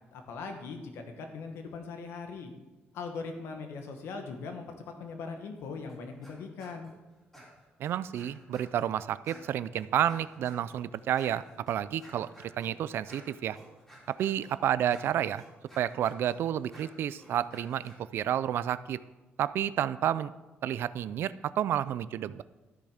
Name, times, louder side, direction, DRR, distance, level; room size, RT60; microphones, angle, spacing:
voice 1, 0.1-2.5 2.9-6.9, left 4 dB, 85° left, 5 dB, 1.5 m, -40 dB
sound 1, 5.9-6.3 6.6-6.9 7.3-8.9 9.2-18.0, equal, 10° left, 3.5 m, -54 dB
voice 2, 7.8-13.6 14.1-15.4 15.8-19.0 19.4-20.3 20.6-22.4, right 10 dB, 65° right, 16 dB, 0.4 m, -30 dB
13.0 x 6.8 x 5.0 m, 1.1 s
cardioid pair, 145°, 4 cm